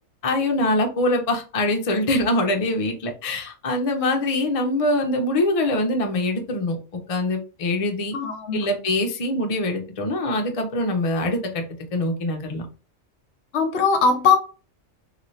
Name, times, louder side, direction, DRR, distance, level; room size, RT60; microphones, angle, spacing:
voice 1, 0.2-6.8 7.1-8.2 8.5-11.6 11.9-12.7, left 1 dB, 45° left, 0.4 m, -23 dB
voice 2, 8.1-8.7 13.5-14.4, left 5 dB, 60° left, 0.8 m, -20 dB
3.0 x 2.7 x 3.0 m
omnidirectional pair, 1.4 m